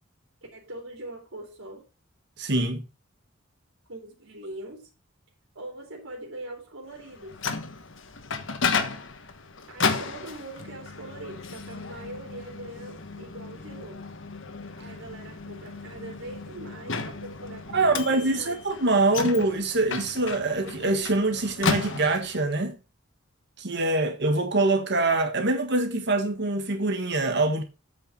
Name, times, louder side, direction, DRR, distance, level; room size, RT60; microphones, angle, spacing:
voice 1, 0.5-1.9 3.9-4.9 5.5-7.3 9.7-14.0 14.8-18.6, right 1 dB, 75° right, 3.1 m, -42 dB
voice 2, 2.4-2.8 17.7-22.7 23.6-27.6, right 2 dB, 55° right, 1.4 m, -24 dB
Microwave oven, 7.0-22.5, left 4 dB, 60° left, 1.3 m, -33 dB
8.5 x 5.7 x 5.6 m
head